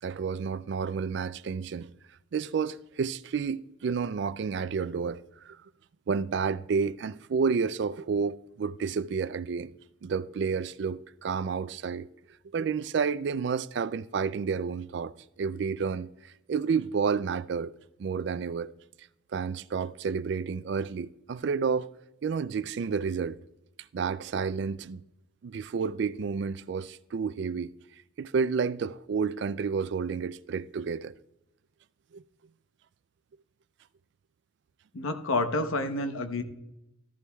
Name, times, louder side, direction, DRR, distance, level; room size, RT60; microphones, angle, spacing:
voice 1, 0.0-1.9 2.3-5.6 6.1-9.7 10.0-12.1 12.5-17.7 18.0-18.7 19.3-21.9 22.2-23.4 23.9-25.0 25.4-27.7 28.2-31.1 32.1-32.2, right 5 dB, 55° right, 0.3 m, -30 dB
voice 2, 34.9-36.4, left 2 dB, 80° left, 0.9 m, -29 dB
13.5 x 11.5 x 2.3 m
head